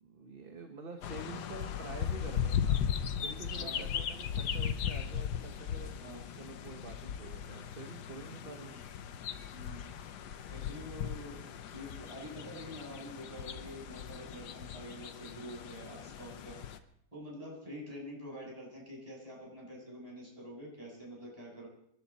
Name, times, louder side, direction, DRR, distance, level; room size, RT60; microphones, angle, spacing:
voice 1, 0.0-2.9 3.2-5.9 6.4-8.8, right 4 dB, 35° right, 3 dB, 1.3 m, -47 dB
sound 1, 1.0-16.8, left 8 dB, 80° left, 1.5 m, -37 dB
voice 2, 3.6-3.9 6.0-6.2 6.5-6.6 8.4-8.5 9.5-9.8 10.2-11.4 11.7-16.8 17.1-21.7, equal, 20° right, -3 dB, 7.7 m, -47 dB
27.0 x 11.5 x 4.3 m, 0.73 s
omnidirectional pair, 1.8 m